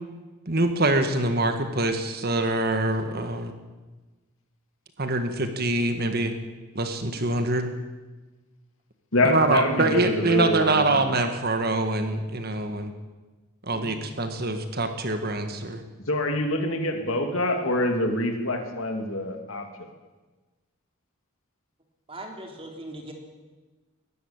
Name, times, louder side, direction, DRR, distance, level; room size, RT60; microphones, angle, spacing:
voice 1, 0.5-3.5 5.0-6.3 6.7-7.7 9.2-12.9 13.7-15.8, right 2 dB, 45° right, 7 dB, 1.8 m, -24 dB
voice 2, 9.1-11.1 16.1-19.7, left 1 dB, 65° left, 5 dB, 2.7 m, -25 dB
voice 3, 13.7-14.1 22.1-23.1, right 1 dB, 25° right, 2 dB, 3.4 m, -40 dB
20.0 x 14.5 x 8.9 m, 1.2 s
head